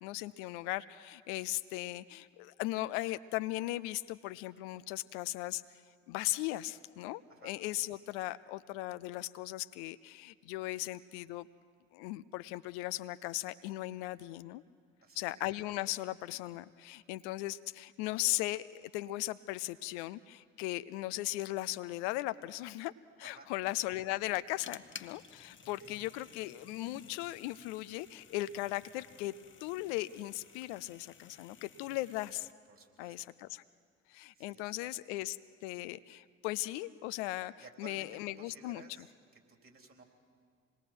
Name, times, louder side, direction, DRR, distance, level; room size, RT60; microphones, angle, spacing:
voice 1, 0.0-5.6 6.1-11.5 11.9-14.6 15.2-22.9 23.2-29.3 29.6-32.5 33.0-33.6 34.1-35.4 35.6-37.5 37.8-39.1, left 17 dB, 75° left, 15 dB, 0.5 m, -38 dB
voice 2, 15.0-15.3 23.2-23.5 25.6-25.9 32.7-33.2 34.4-34.9 37.6-38.1 38.4-39.1 39.5-40.0, right 4 dB, 40° right, 2 dB, 4.0 m, -56 dB
sound 1, 24.1-32.5, left 6 dB, 35° left, 1.0 m, -55 dB
26.0 x 20.5 x 6.2 m, 2.1 s
hypercardioid pair, 45°, 34 cm